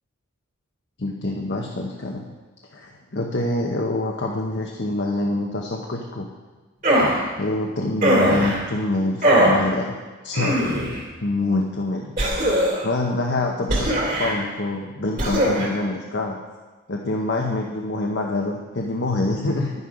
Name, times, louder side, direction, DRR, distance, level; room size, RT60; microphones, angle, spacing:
voice 1, 1.0-2.2 2.7-6.3 7.3-10.0 10.2-10.7 11.2-12.2 12.8-16.4 16.9-19.7, left 2 dB, 55° left, 0 dB, 0.9 m, -26 dB
sound 1, 6.8-7.2 8.0-8.6 9.2-9.6 10.3-11.0 12.2-12.9 13.7-14.3 15.2-15.7, right 1 dB, 40° right, 2.5 m, -20 dB
11.0 x 9.6 x 5.0 m, 1.3 s
head